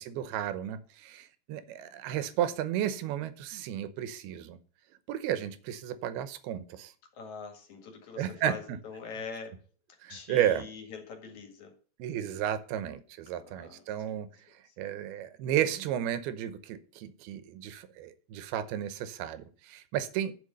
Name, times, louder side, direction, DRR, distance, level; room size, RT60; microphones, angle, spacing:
voice 1, 0.0-4.6 5.1-6.9 8.2-8.8 10.0-10.7 12.0-14.3 14.8-20.3, right 11 dB, 85° right, 13 dB, 2.8 m, -33 dB
voice 2, 7.1-9.6 10.1-11.7 13.3-14.2 14.7-14.8, left 5 dB, 55° left, 4 dB, 3.1 m, -44 dB
10.0 x 6.2 x 5.3 m, 0.41 s
omnidirectional pair, 4.4 m